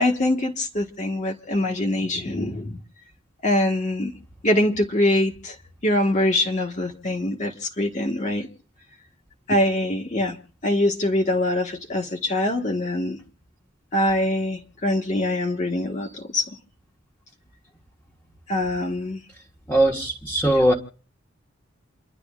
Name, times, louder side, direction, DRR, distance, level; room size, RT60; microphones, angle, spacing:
voice 1, 0.0-2.8 3.4-4.1 4.4-5.5 5.8-8.5 9.5-10.4 10.6-13.2 13.9-16.5 18.5-19.2, left 1 dB, 35° left, 1.5 m, -23 dB
voice 2, 19.7-20.7, right 1 dB, 10° left, 1.4 m, -20 dB
29.0 x 11.5 x 2.4 m
head